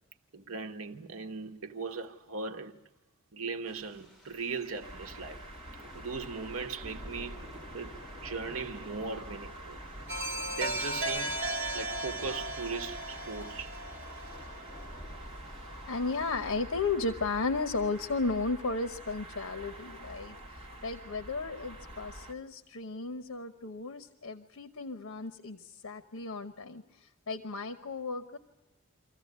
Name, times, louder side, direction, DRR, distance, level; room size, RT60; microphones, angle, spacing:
voice 1, 0.3-2.8 3.3-5.4 5.9-7.5 7.7-9.8 10.5-11.4 11.7-13.8, right 4 dB, 75° right, 1.1 m, -39 dB
Thunder / Rain, 3.7-16.6, left 1 dB, ahead, 2.1 m, -50 dB
sound 1, 4.8-22.3, right 1 dB, 25° right, 2.2 m, -47 dB
sound 2, 10.1-14.8, right 1 dB, 55° right, 2.2 m, -36 dB
voice 2, 15.9-28.4, left 3 dB, 75° left, 1.0 m, -34 dB
25.0 x 15.0 x 9.4 m
head